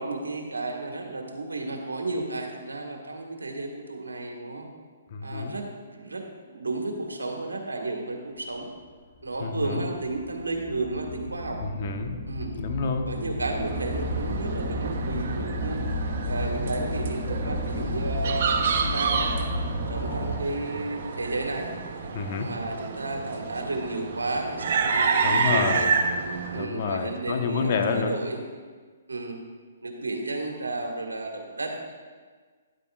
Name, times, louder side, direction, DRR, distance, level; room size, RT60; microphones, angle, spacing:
voice 1, 0.0-4.7 5.2-8.7 9.2-11.6 12.3-12.5 13.1-15.8 16.3-19.5 19.9-21.7 22.4-25.9 26.5-28.5 29.1-29.4 29.8-31.9, right 2 dB, 90° right, 2 dB, 1.7 m, -32 dB
voice 2, 5.1-5.5 9.4-9.8 11.6-13.1 17.4-17.9 22.1-22.5 25.2-25.9 26.5-28.2, left 5 dB, 50° left, 5 dB, 1.2 m, -29 dB
sound 1, 9.2-9.3 10.0-20.6, equal, 30° left, 3.3 m, -32 dB
sound 2, 13.6-26.6, right 5 dB, 55° right, 1.0 m, -29 dB
12.0 x 11.0 x 2.5 m, 1.5 s
figure-of-eight pair, 135°, 0 cm